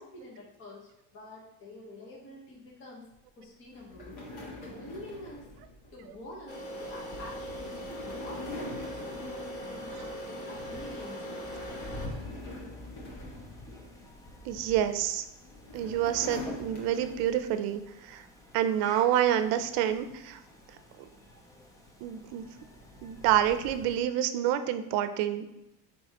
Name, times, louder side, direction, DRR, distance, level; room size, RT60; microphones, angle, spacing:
voice 1, 0.0-3.1 3.4-4.2 4.6-5.4 5.9-11.4, left 1 dB, 30° left, -3 dB, 1.3 m, -47 dB
sound 1, 3.7-10.3 10.6-10.9 11.3-14.3 15.1-17.6, left 2 dB, 55° left, 1.7 m, -45 dB
sound 2, 6.5-12.1, equal, 90° left, 1.9 m, -40 dB
sound 3, 6.7-24.0, left 1 dB, 10° left, 0.4 m, -49 dB
voice 2, 14.4-15.2 15.7-18.2 18.5-20.4 22.0-22.4 23.0-25.4, right 11 dB, 65° right, 10 dB, 0.6 m, -28 dB
10.5 x 3.6 x 3.0 m, 0.88 s
cardioid pair, 175°, 40 cm